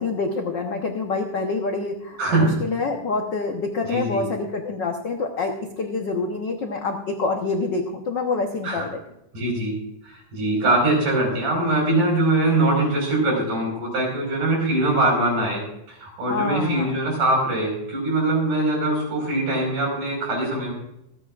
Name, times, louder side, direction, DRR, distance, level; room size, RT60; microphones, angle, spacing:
voice 1, 0.0-9.0 16.3-17.0, left 3 dB, 75° left, 3 dB, 1.0 m, -26 dB
voice 2, 2.2-2.6 3.8-4.2 8.6-8.9 9.3-9.8 10.0-15.6 15.9-20.7, right 2 dB, 75° right, 0 dB, 6.4 m, -22 dB
26.0 x 9.7 x 2.5 m, 0.79 s
omnidirectional pair, 3.6 m